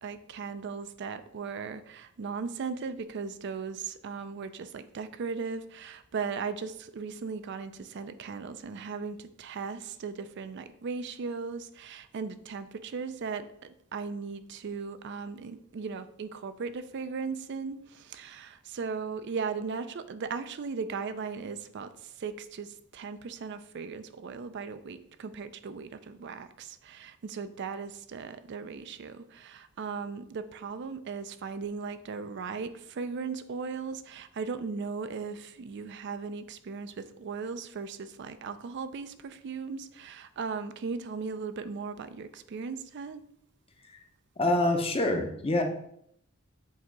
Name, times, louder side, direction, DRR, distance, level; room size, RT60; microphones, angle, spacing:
voice 1, 0.0-21.9 22.2-43.2, right 5 dB, 60° right, 11 dB, 0.4 m, -37 dB
voice 2, 44.4-45.6, left 1 dB, 30° left, 4 dB, 0.7 m, -26 dB
7.4 x 2.8 x 4.6 m, 0.72 s
head